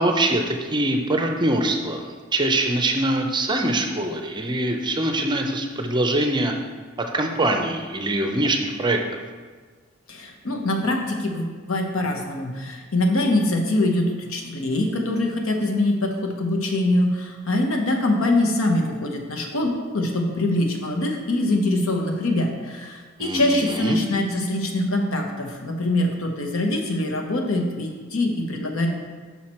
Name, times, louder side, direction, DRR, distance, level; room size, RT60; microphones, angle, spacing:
voice 1, 0.0-2.0 2.3-6.5 7.0-9.0 23.2-24.0, right 1 dB, 20° right, 4 dB, 0.6 m, -23 dB
voice 2, 10.1-28.9, left 1 dB, 80° left, 2 dB, 1.0 m, -23 dB
6.1 x 5.7 x 4.3 m, 1.5 s
head